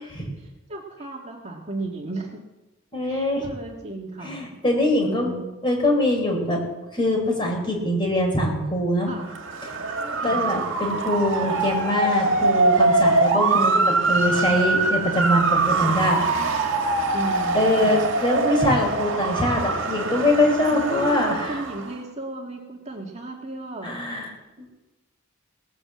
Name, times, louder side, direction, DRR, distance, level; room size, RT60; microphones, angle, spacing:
voice 1, 0.4-2.4 3.0-4.5 5.0-5.5 9.1-9.3 10.2-10.4 13.3-14.1 15.7-16.0 17.1-18.0 20.7-24.0, right 2 dB, 35° right, -1 dB, 2.1 m, -34 dB
voice 2, 2.9-3.5 4.2-5.3 5.6-6.6 6.9-9.1 10.0-13.7 14.1-16.6 17.5-21.6 23.8-24.3 24.6-24.7, left 1 dB, 25° left, 1 dB, 4.3 m, -23 dB
Motor vehicle (road) / Siren, 9.2-21.9, right 3 dB, 70° right, 2.0 m, -23 dB
18.5 x 8.8 x 7.5 m, 1.0 s
head